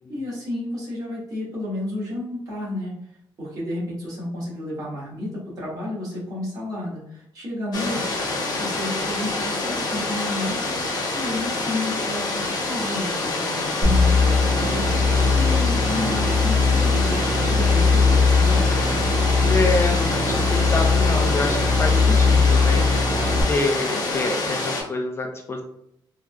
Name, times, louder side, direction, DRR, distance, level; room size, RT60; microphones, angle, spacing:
voice 1, 0.1-2.9 3.4-8.2 8.6-10.8 11.1-18.8, left 1 dB, 45° right, -6 dB, 1.5 m, -31 dB
sound 1, 7.7-24.8, left 2 dB, 50° left, 0.8 m, -27 dB
sound 2, 13.8-23.4, left 4 dB, 30° right, 0.9 m, -20 dB
voice 2, 18.5-19.1 19.4-25.6, left 2 dB, 30° left, 2 dB, 0.3 m, -27 dB
3.5 x 2.3 x 2.2 m, 0.75 s
cardioid pair, 145°, 9 cm